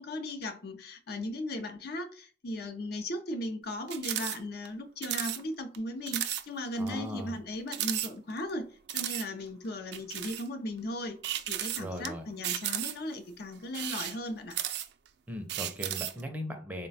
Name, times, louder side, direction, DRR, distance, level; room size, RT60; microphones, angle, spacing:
voice 1, 0.0-11.2 11.5-14.6, left 1 dB, 55° left, 7 dB, 0.6 m, -37 dB
sound 1, 3.9-4.4 4.6-4.7 5.0-5.4 5.7-5.8 6.1-6.4 6.9-7.0 7.7-8.5 8.9-9.3 9.9-10.5 11.2-12.1 12.4-13.1 13.7-15.1 15.5-16.2, right 12 dB, 60° right, 0.4 m, -34 dB
voice 2, 6.8-7.4 11.8-12.2 15.3-16.9, equal, 10° right, 4 dB, 0.5 m, -38 dB
3.9 x 2.2 x 4.0 m, 0.41 s
head